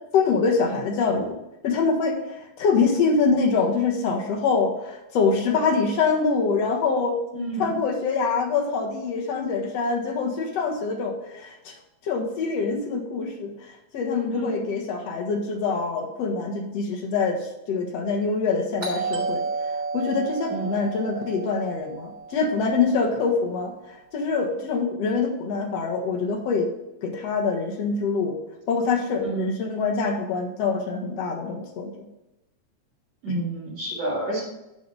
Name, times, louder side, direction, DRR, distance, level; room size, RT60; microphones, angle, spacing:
voice 1, 0.1-1.4 1.6-7.2 7.6-26.7 27.0-28.4 28.7-32.1 33.3-33.4, left 4 dB, 60° left, 2 dB, 2.3 m, -25 dB
voice 2, 7.3-7.7 14.3-14.5 20.5-20.7 29.2-29.5 33.2-34.4, right 2 dB, 60° right, -6 dB, 3.6 m, -29 dB
Doorbell, 18.8-23.4, right 4 dB, 30° right, 3.5 m, -32 dB
11.0 x 4.8 x 5.4 m, 0.92 s
omnidirectional pair, 3.4 m